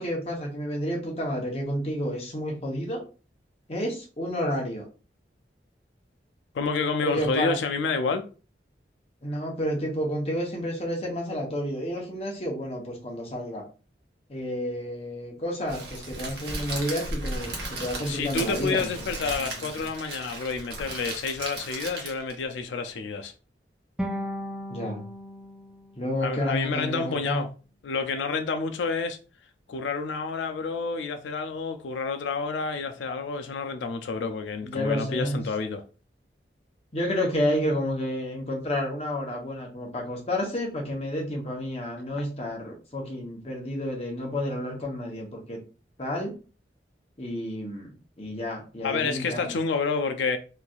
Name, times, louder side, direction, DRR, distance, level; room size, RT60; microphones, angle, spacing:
voice 1, 0.0-3.0 3.7-4.9 7.0-7.6 9.2-13.6 14.3-19.7 24.7-25.0 26.0-27.4 34.6-35.4 36.9-45.6 46.0-46.3 47.2-49.5, equal, 35° left, 0.8 m, -30 dB
voice 2, 6.5-8.2 18.0-23.3 26.2-27.5 27.8-29.2 29.7-35.8 42.1-42.2 48.8-50.4, left 4 dB, 85° left, 0.4 m, -29 dB
Crackle, 15.7-22.4, right 2 dB, 60° right, 1.0 m, -36 dB
sound 1, 24.0-27.1, equal, 5° right, 0.4 m, -37 dB
3.1 x 2.6 x 2.3 m
head